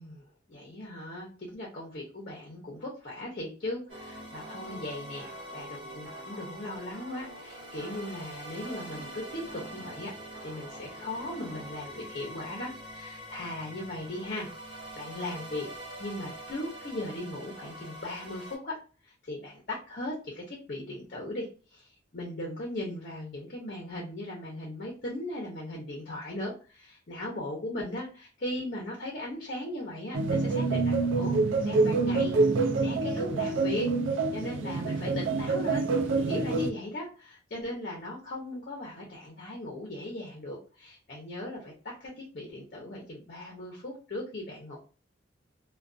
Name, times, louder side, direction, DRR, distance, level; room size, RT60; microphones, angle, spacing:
voice 1, 0.0-10.1 10.4-15.7 16.0-18.8 19.0-21.9 22.1-31.4 31.6-33.9 34.3-35.9 36.3-44.8, left 1 dB, 50° left, -2 dB, 0.6 m, -38 dB
sound 1, 3.9-18.6, equal, 30° right, 1.2 m, -44 dB
sound 2, 30.1-36.7, right 3 dB, 75° right, 0.4 m, -26 dB
2.4 x 2.2 x 2.4 m, 0.35 s
head